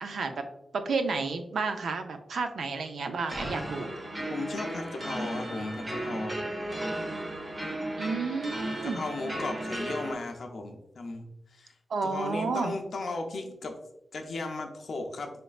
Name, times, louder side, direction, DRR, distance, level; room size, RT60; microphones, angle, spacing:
voice 1, 0.0-0.4 0.7-3.9 8.0-9.0 11.9-12.7, right 4 dB, 90° right, 7 dB, 0.4 m, -31 dB
sound 1, 3.3-10.1, right 1 dB, 30° right, 0.8 m, -35 dB
voice 2, 4.3-6.4 8.8-11.7 12.0-13.8 14.1-15.3, left 3 dB, 70° left, 3 dB, 0.5 m, -36 dB
4.2 x 3.1 x 2.4 m, 0.83 s
wide cardioid pair, 115°, 0 cm